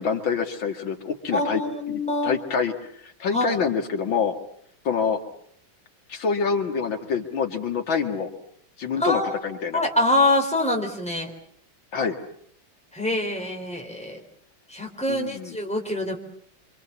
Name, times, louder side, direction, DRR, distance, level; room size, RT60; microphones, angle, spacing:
voice 1, 0.0-1.6 1.9-2.9 3.2-4.3 4.8-5.2 6.1-8.3 8.8-9.8 11.9-12.2 15.1-15.6, left 6 dB, 85° left, 4 dB, 2.7 m, -26 dB
voice 2, 1.3-2.3 3.3-3.6 9.0-9.4 9.7-11.3 12.9-14.2 14.7-16.2, left 2 dB, 5° left, 1 dB, 3.9 m, -25 dB
26.5 x 26.0 x 7.2 m, 0.66 s
omnidirectional pair, 2.1 m